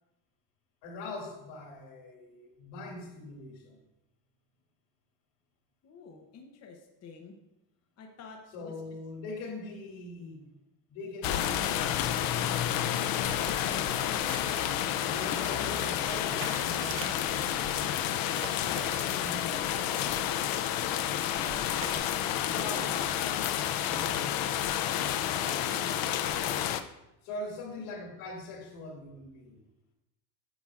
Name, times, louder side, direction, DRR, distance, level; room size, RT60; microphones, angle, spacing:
voice 1, 0.8-3.8 8.5-10.5 10.9-13.0 15.0-18.1 18.6-20.5 22.4-22.9 23.8-24.4 27.2-29.6, left 2 dB, 90° left, -1 dB, 2.5 m, -42 dB
voice 2, 5.8-7.3 8.0-8.7 12.9-14.4 20.9-21.7 25.5-26.0 27.7-27.8, left 4 dB, 35° left, 2 dB, 0.8 m, -49 dB
sound 1, 11.2-26.8, left 11 dB, 50° left, 0.4 m, -30 dB
sound 2, 13.2-22.0, right 6 dB, 30° right, 0.5 m, -47 dB
10.0 x 7.2 x 2.4 m, 0.91 s
cardioid pair, 160°, 46 cm